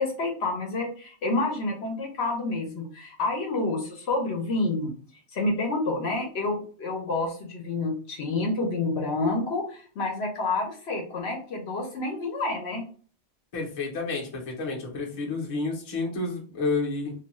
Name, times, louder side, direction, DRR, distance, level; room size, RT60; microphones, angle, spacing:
voice 1, 0.0-4.9 5.3-12.8, left 2 dB, 65° left, 1 dB, 0.9 m, -28 dB
voice 2, 13.5-17.1, left 3 dB, 35° left, -2 dB, 0.7 m, -30 dB
2.6 x 2.2 x 2.9 m, 0.41 s
omnidirectional pair, 1.2 m